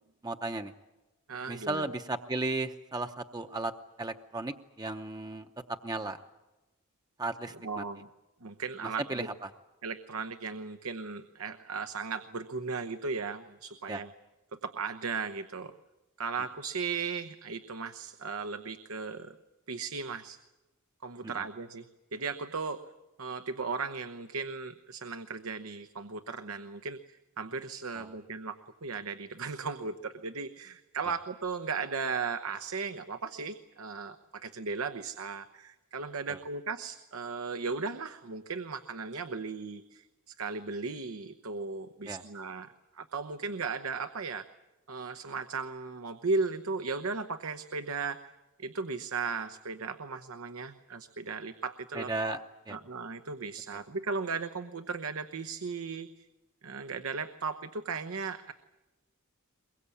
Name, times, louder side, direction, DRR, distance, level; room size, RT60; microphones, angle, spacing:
voice 1, 0.2-0.7 1.5-3.7 4.0-5.5 5.8-6.2 7.2-7.8 9.1-9.3 13.9-14.0 21.2-21.3 28.0-28.1 42.1-42.2 51.9-52.4 52.7-52.8, right 2 dB, 20° right, 7 dB, 0.7 m, -35 dB
voice 2, 1.3-1.8 7.6-8.1 8.4-9.3 9.8-14.1 14.6-15.7 16.2-19.3 19.7-20.4 21.0-21.9 22.1-22.8 23.2-27.0 27.4-44.4 44.9-48.2 48.6-52.1 52.7-56.2 56.6-58.5, right 4 dB, 85° right, 9 dB, 1.0 m, -36 dB
23.0 x 22.5 x 8.5 m, 1.1 s
head